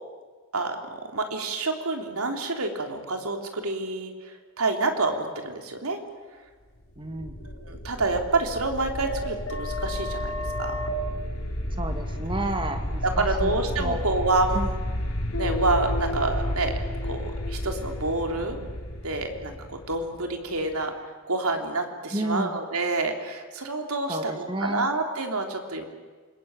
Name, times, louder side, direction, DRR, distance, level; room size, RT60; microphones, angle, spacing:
voice 1, 0.5-6.0 7.4-10.8 12.3-12.6 13.0-14.8 15.4-16.7 17.0-18.6 19.0-20.9 21.3-25.9, right 3 dB, 80° right, 4 dB, 3.4 m, -28 dB
sound 1, 7.0-20.7, left 1 dB, 70° left, 3.6 m, -31 dB
voice 2, 7.0-7.4 11.8-14.0 14.5-14.7 22.1-22.5 24.1-24.9, right 1 dB, 20° right, 7 dB, 2.1 m, -31 dB
28.5 x 21.0 x 9.1 m, 1.4 s
head